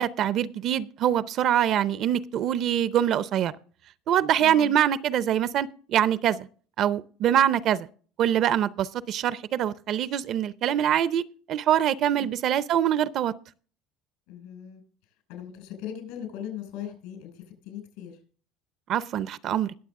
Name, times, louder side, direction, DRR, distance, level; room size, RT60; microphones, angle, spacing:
voice 1, 0.0-3.5 4.1-6.5 6.8-7.9 8.2-11.2 11.5-13.3 18.9-19.7, right 10 dB, 50° right, 0.6 m, -24 dB
voice 2, 4.4-4.7 12.1-12.3 14.3-14.8 15.3-18.2, left 10 dB, 80° left, 5.8 m, -39 dB
20.5 x 7.3 x 3.6 m
supercardioid pair, 120°, 0 cm